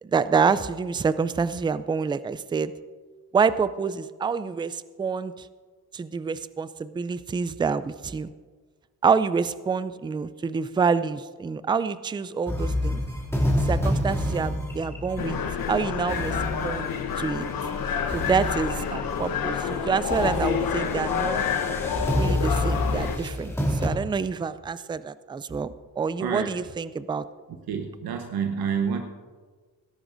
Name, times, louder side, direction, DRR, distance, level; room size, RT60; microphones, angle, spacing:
voice 1, 0.0-2.7 3.3-5.5 5.9-8.3 9.0-13.0 13.6-15.4 15.7-16.4 16.6-16.9 17.2-17.5 18.1-21.4 22.1-27.2, right 5 dB, 15° right, 15 dB, 0.3 m, -27 dB
sound 1, 12.5-17.7 18.1-19.3 19.6-19.8 20.1-23.9, left 1 dB, 5° left, 2.7 m, -28 dB
sound 2, 15.2-23.2, left 6 dB, 65° left, 1.1 m, -28 dB
voice 2, 26.2-26.5 27.7-29.0, right 7 dB, 75° right, 5 dB, 1.0 m, -28 dB
17.0 x 13.5 x 2.6 m, 1.5 s
cardioid pair, 90°, 38 cm